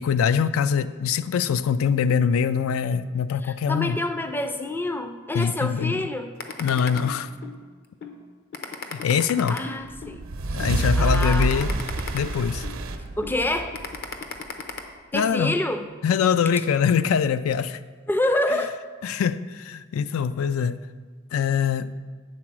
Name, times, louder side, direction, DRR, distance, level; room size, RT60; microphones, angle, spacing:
voice 1, 0.0-4.0 5.3-6.0 6.6-7.3 8.9-9.6 10.5-11.7 12.1-12.6 15.1-15.6 16.0-17.8 19.0-20.8 21.3-22.0, left 7 dB, 90° left, 14 dB, 0.3 m, -23 dB
voice 2, 3.4-6.3 9.5-10.2 11.0-11.8 13.2-13.7 15.1-15.8 18.1-18.8, left 1 dB, 10° left, 7 dB, 0.3 m, -27 dB
sound 1, 6.4-7.6 8.0-8.2 8.5-10.2 10.6-10.8 11.1-12.8 13.2-13.4 13.7-14.8, left 5 dB, 55° left, 0.6 m, -35 dB
sound 2, 9.9-14.5, right 2 dB, 80° right, 0.7 m, -27 dB
8.6 x 3.9 x 6.1 m, 1.5 s
head